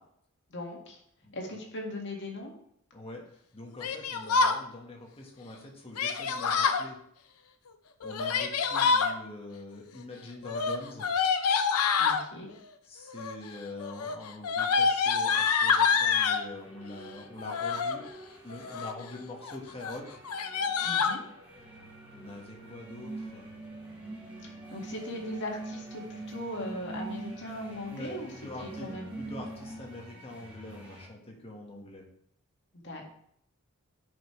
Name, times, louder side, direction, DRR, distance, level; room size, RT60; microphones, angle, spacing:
voice 1, 0.5-1.0 1.3-2.5 12.0-12.5 20.8-21.2 24.4-28.3 28.6-29.1 32.8-33.0, left 1 dB, 55° left, 0 dB, 1.8 m, -39 dB
voice 2, 2.9-7.0 8.0-11.1 12.8-18.1 18.4-20.2 22.1-23.5 27.9-28.9 29.2-32.0, left 2 dB, 25° left, 0 dB, 1.5 m, -44 dB
Yell, 3.8-4.6 5.9-6.8 8.0-9.1 10.4-12.2 13.1-13.5 13.8-16.4 17.4-18.0 18.5-19.0 19.4-19.6 19.8-19.9 20.2-21.2, left 5 dB, 85° left, 0.6 m, -27 dB
sound 1, 16.4-31.1, equal, 10° right, 2.5 m, -52 dB
sound 2, 21.6-30.1, right 3 dB, 70° right, 1.8 m, -43 dB
10.0 x 5.3 x 3.2 m, 0.71 s
head